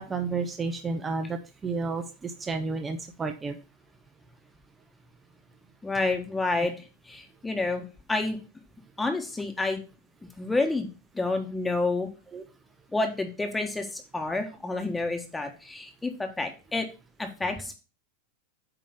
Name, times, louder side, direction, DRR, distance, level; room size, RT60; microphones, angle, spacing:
voice 1, 0.0-3.6 6.6-6.7 12.3-12.4, right 4 dB, 20° right, 6 dB, 0.8 m, -31 dB
voice 2, 5.8-6.7 7.1-8.4 9.0-9.8 10.4-10.9 11.1-12.1 12.9-16.9 17.2-17.7, left 3 dB, 10° left, 4 dB, 1.4 m, -29 dB
8.7 x 3.0 x 5.8 m, 0.32 s
hypercardioid pair, 100°, 0 cm